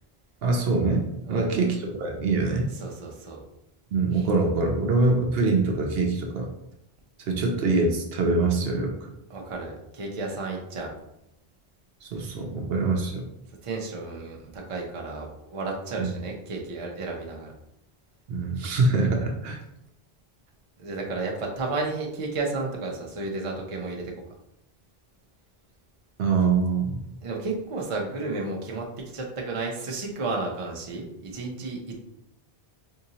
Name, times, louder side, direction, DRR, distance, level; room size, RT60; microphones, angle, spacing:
voice 1, 0.4-2.7 3.9-6.5 7.3-9.1 12.0-13.2 16.0-16.1 18.3-19.6 26.2-27.0, right 3 dB, 70° right, 1 dB, 0.8 m, -24 dB
voice 2, 1.2-1.6 2.7-3.4 4.1-4.3 9.3-10.9 13.6-17.5 20.8-24.1 27.2-28.9 29.1-32.0, right 3 dB, 40° right, -1 dB, 0.6 m, -32 dB
3.7 x 2.8 x 2.8 m, 0.82 s
omnidirectional pair, 1.1 m